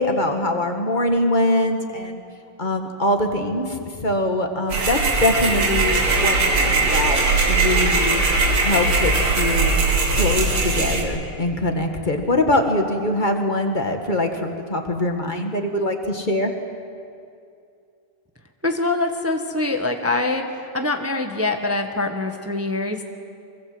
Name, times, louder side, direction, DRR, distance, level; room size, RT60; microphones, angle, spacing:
voice 1, 0.0-2.2 2.6-7.2 7.5-8.2 8.6-9.8 10.1-16.5, left 1 dB, 20° left, 4 dB, 2.0 m, -23 dB
sound 1, 4.7-11.0, right 3 dB, 75° right, 3.3 m, -20 dB
voice 2, 18.6-20.4 20.7-23.0, left 2 dB, 10° right, 5 dB, 1.1 m, -24 dB
24.5 x 23.5 x 8.0 m, 2.4 s
omnidirectional pair, 2.4 m